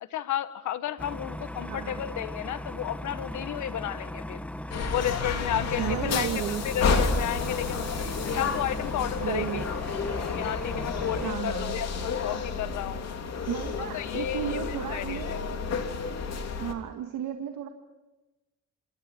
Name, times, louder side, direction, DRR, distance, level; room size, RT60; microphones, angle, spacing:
voice 1, 0.0-4.4 4.9-6.3 6.6-8.1 8.3-9.6 10.3-13.1 13.9-15.4, left 11 dB, 75° left, 12 dB, 1.5 m, -33 dB
sound 1, 1.0-11.3, left 1 dB, 5° left, 1.4 m, -38 dB
voice 2, 1.6-2.0 5.8-6.6 9.1-9.7 11.2-11.8 13.5-15.6 16.6-17.7, right 10 dB, 85° right, 4 dB, 2.0 m, -34 dB
sound 2, 4.7-16.7, left 5 dB, 60° left, 3.4 m, -31 dB
27.5 x 26.5 x 4.6 m, 1.1 s
cardioid pair, 90°, 30 cm